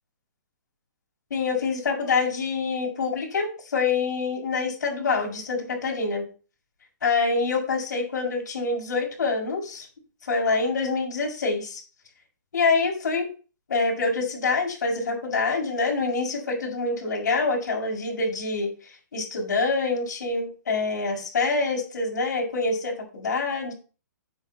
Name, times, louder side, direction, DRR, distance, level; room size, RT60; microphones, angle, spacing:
voice 1, 1.3-6.3 7.0-9.9 10.2-11.8 12.5-13.3 13.7-23.7, left 4 dB, 70° left, -1 dB, 6.0 m, -26 dB
10.5 x 7.8 x 3.5 m, 0.35 s
hypercardioid pair, 170°, 10 cm